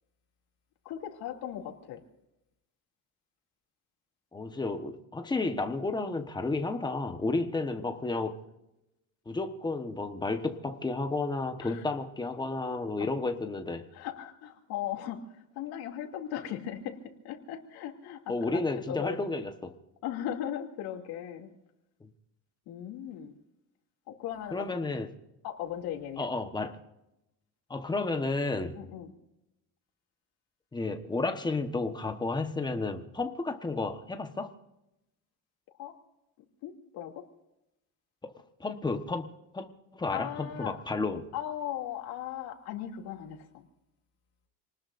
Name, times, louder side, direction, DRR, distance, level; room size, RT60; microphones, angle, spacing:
voice 1, 0.8-2.0 11.6-11.8 13.0-13.1 13.9-17.0 17.2-18.6 18.9-19.2 20.0-21.5 22.7-23.3 24.1-24.9 25.4-26.3 28.7-29.1 35.8-35.9 36.6-37.2 40.1-40.7 41.3-43.7, left 10 dB, 70° left, 2 dB, 2.8 m, -38 dB
voice 2, 4.3-8.4 9.3-13.8 18.3-19.7 22.0-22.1 24.5-25.1 26.2-26.8 27.7-28.8 30.7-34.5 38.2-38.3 38.6-41.3, left 3 dB, 10° left, 6 dB, 1.2 m, -32 dB
27.5 x 19.5 x 2.6 m, 0.89 s
cardioid pair, 160°, 39 cm